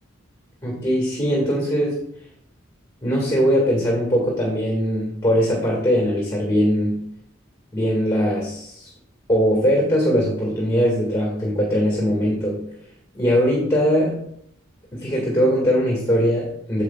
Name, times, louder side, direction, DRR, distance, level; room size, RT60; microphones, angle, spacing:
voice 1, 0.6-2.0 3.0-7.0 7.7-8.9 9.3-12.6 13.1-14.2 14.9-16.8, equal, 15° left, -2 dB, 1.8 m, -20 dB
9.6 x 7.1 x 2.3 m, 0.69 s
head